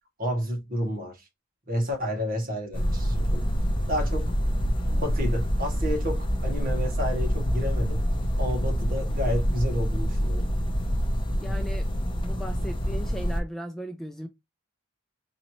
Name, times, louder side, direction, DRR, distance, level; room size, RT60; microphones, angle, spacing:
voice 1, 0.2-1.3 1.7-3.4 3.9-4.3 4.9-8.0 8.4-10.5, equal, 45° right, 1.4 m, -30 dB
sound 1, 2.7-13.4, equal, 25° left, 0.8 m, -26 dB
voice 2, 11.4-11.9 12.2-14.3, equal, ahead, 0.4 m, -37 dB
4.0 x 2.7 x 3.0 m
head